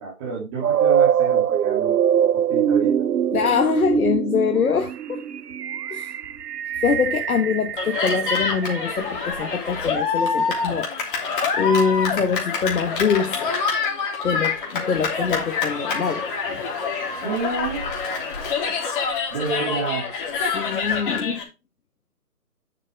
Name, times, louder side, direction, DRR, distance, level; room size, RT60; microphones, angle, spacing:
voice 1, 0.0-2.0 2.3-3.1 10.5-10.8 11.5-11.8 17.2-17.9 19.3-20.0, right 4 dB, 20° right, 2.7 m, -30 dB
sound 1, 0.6-9.6, right 9 dB, 90° right, 0.7 m, -23 dB
voice 2, 3.3-5.2 5.9-6.1 6.8-10.9 11.6-13.5 14.2-16.2 20.4-21.5, left 6 dB, 65° left, 1.3 m, -24 dB
Cheering, 7.8-21.4, left 5 dB, 35° left, 3.1 m, -26 dB
8.8 x 7.6 x 3.4 m
hypercardioid pair, 160°, 46 cm